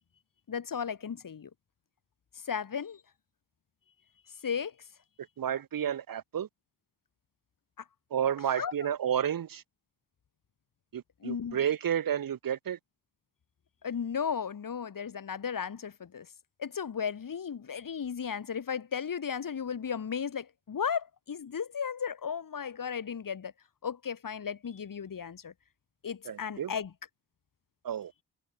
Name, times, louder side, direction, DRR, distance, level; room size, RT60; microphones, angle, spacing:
voice 1, 0.5-1.5 2.4-3.0 4.4-4.7 8.6-8.9 11.2-11.6 13.8-16.3 16.6-23.5 23.8-25.5 26.0-26.9, left 7 dB, 50° left, 3.1 m, -35 dB
voice 2, 5.4-6.5 8.1-9.6 10.9-12.8 26.3-26.7 27.8-28.1, right 9 dB, 55° right, 1.1 m, -31 dB
supercardioid pair, 55°, 42 cm